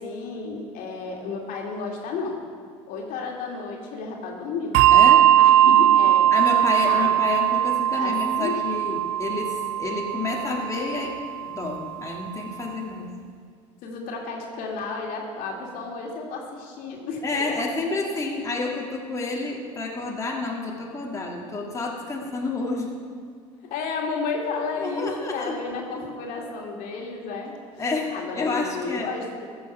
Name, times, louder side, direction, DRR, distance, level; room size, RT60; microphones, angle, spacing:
voice 1, 0.0-2.4 2.9-4.7 5.4-6.2 6.8-7.1 7.9-8.6 13.8-17.2 23.7-27.5 28.1-29.5, left 4 dB, 60° left, 0 dB, 2.2 m, -32 dB
Bell, 4.7-11.6, right 11 dB, 65° right, 0.4 m, -19 dB
voice 2, 4.9-5.3 6.3-11.1 11.5-13.1 17.2-22.9 24.8-25.6 27.8-29.1, left 3 dB, 20° left, -2 dB, 1.8 m, -29 dB
14.5 x 6.4 x 5.9 m, 2.1 s
hypercardioid pair, 75°, 16 cm